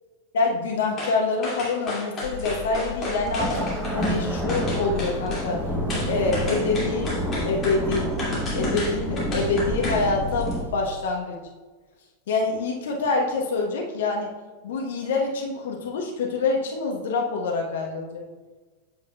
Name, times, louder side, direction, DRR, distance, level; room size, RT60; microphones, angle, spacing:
voice 1, 0.3-5.6 6.0-7.2 7.5-8.1 8.5-11.4 12.3-14.3 14.6-18.3, left 3 dB, 60° left, 1 dB, 1.0 m, -26 dB
sound 1, 1.0-1.2 1.4-4.2 4.5-5.5 5.9-10.0 10.4-10.5, left 2 dB, 25° left, 2.2 m, -31 dB
sound 2, 2.2-10.8, left 5 dB, 85° left, 0.5 m, -38 dB
sound 3, 3.2-10.6, right 1 dB, 10° right, 0.9 m, -29 dB
8.0 x 6.9 x 2.3 m, 1.3 s
figure-of-eight pair, 90°, 0 cm